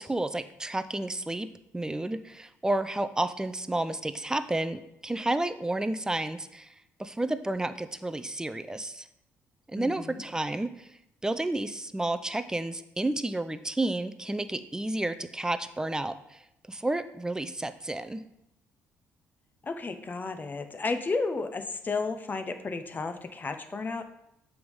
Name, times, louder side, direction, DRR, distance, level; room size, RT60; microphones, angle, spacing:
voice 1, 0.0-1.5 1.7-6.7 7.0-9.1 9.7-16.4 16.7-18.2, right 2 dB, 10° right, 11 dB, 0.5 m, -31 dB
voice 2, 9.8-10.2 19.6-24.0, left 3 dB, 30° left, 8 dB, 0.7 m, -33 dB
7.7 x 3.5 x 5.4 m, 0.82 s
cardioid pair, 85°, 6 cm